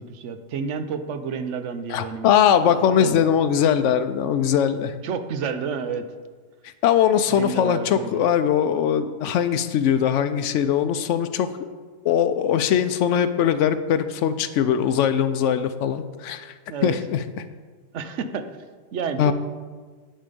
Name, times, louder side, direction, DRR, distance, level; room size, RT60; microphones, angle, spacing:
voice 1, 0.0-2.3 2.9-3.2 5.0-6.0 7.3-8.2 16.7-16.9 17.9-18.6 18.9-19.3, right 6 dB, 80° right, 9 dB, 1.0 m, -30 dB
voice 2, 1.9-4.9 6.8-11.5 12.0-16.5 16.8-17.2 19.2-19.3, left 9 dB, 90° left, 11 dB, 0.9 m, -21 dB
10.5 x 5.6 x 5.2 m, 1.5 s
omnidirectional pair, 1.2 m